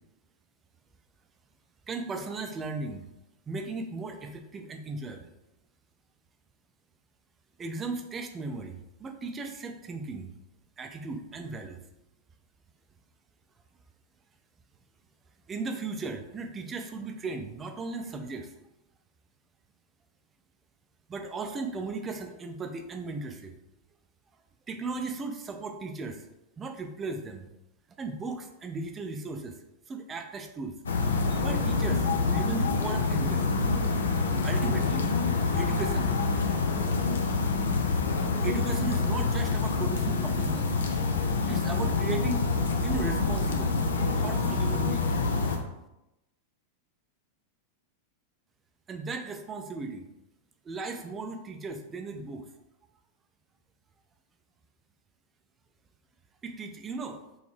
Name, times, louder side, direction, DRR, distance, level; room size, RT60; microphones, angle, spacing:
voice 1, 1.9-3.1 3.5-5.3 7.6-10.3 10.8-11.8 15.5-18.5 21.1-23.5 24.7-26.3 26.6-27.5 28.0-29.5 29.9-30.7 31.3-33.6 34.4-36.2 38.4-40.8 41.5-42.5 42.8-43.8 44.2-45.1 48.9-50.1 50.6-52.4 56.4-57.2, right 3 dB, 20° right, 5 dB, 0.5 m, -36 dB
sound 1, 30.9-45.6, left 4 dB, 65° left, 0.5 m, -26 dB
4.0 x 2.9 x 3.1 m, 0.91 s
figure-of-eight pair, 90°, 0 cm